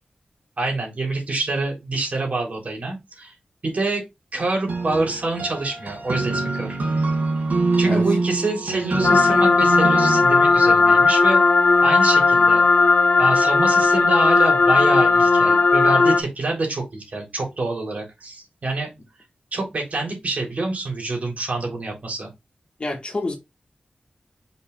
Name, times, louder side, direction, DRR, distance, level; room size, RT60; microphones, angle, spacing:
voice 1, 0.6-3.3 3.6-4.0 4.3-6.8 7.8-11.4 11.8-12.6 13.2-18.9 19.5-22.3, right 2 dB, 60° right, 3.5 m, -26 dB
sound 1, 4.7-10.2, right 3 dB, 85° right, 1.6 m, -24 dB
sound 2, 9.0-16.2, left 4 dB, 60° left, 0.9 m, -16 dB
voice 2, 22.8-23.4, left 2 dB, 40° left, 2.0 m, -27 dB
5.7 x 4.2 x 3.9 m
wide cardioid pair, 110°, 3 cm